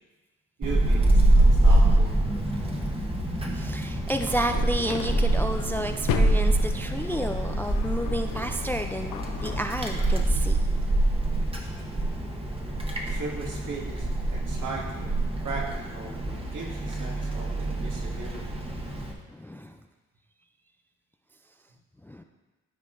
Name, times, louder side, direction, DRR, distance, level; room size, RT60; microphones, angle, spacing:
Wind, 0.6-19.1, right 1 dB, 15° right, 1.2 m, -25 dB
voice 1, 0.6-2.2 13.1-18.6, right 3 dB, 70° right, -2 dB, 1.9 m, -38 dB
voice 2, 2.5-3.0 3.5-10.6 17.8-17.9 19.3-19.8 22.0-22.2, equal, 5° left, 6 dB, 0.3 m, -31 dB
sound 1, 4.2-10.2, left 9 dB, 85° left, 0.7 m, -36 dB
13.0 x 4.7 x 2.6 m, 1.2 s
cardioid pair, 75°, 33 cm